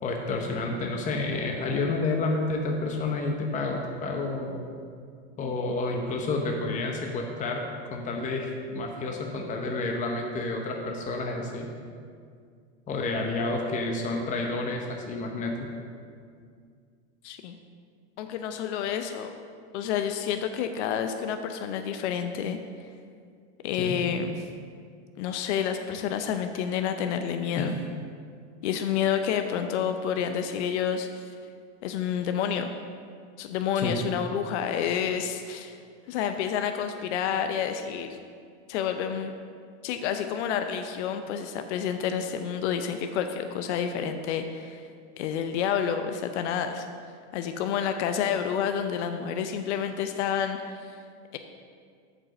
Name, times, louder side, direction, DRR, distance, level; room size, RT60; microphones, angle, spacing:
voice 1, 0.0-4.6 5.4-11.7 12.9-15.6 23.8-24.0 27.6-27.7 33.8-34.0, left 2 dB, 20° left, 1 dB, 0.8 m, -30 dB
voice 2, 17.2-17.6 18.2-19.3 19.7-22.9 23.6-24.3 25.2-27.7 28.6-31.3 31.8-32.7 33.4-35.8 36.1-38.1 38.7-39.3 39.8-44.8 45.2-46.9 47.3-51.0 51.3-51.4, left 8 dB, 70° left, 7 dB, 0.7 m, -29 dB
7.3 x 5.4 x 6.5 m, 2.2 s
supercardioid pair, 130°, 36 cm